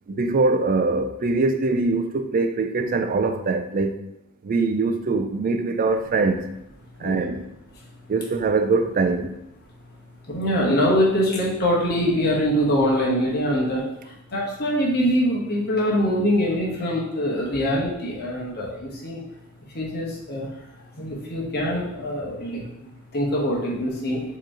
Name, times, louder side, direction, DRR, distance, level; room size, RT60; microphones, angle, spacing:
voice 1, 0.1-4.0 4.4-6.5 7.0-7.4 8.1-9.4, right 3 dB, 40° right, 0.4 m, -23 dB
voice 2, 10.3-13.8 14.3-19.2 19.7-20.5 21.0-24.2, equal, 45° left, 1.1 m, -23 dB
4.7 x 3.0 x 3.7 m
head